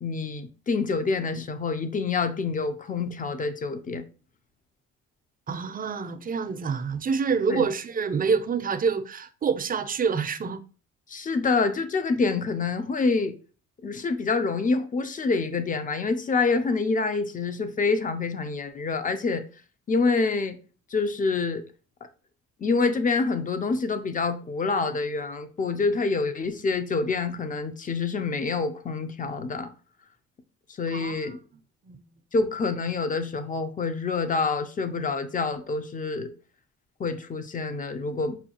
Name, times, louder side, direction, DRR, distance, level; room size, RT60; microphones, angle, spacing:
voice 1, 0.0-4.0 7.5-7.7 11.1-13.3 13.8-19.4 19.9-20.6 20.9-21.6 22.6-29.7 30.8-31.4 32.3-36.3 37.0-38.4, left 4 dB, 30° left, 0.5 m, -27 dB
voice 2, 5.5-10.6 30.9-31.2 31.8-32.0, right 5 dB, 30° right, 0.5 m, -27 dB
5.3 x 2.3 x 2.8 m
cardioid pair, 90°, 29 cm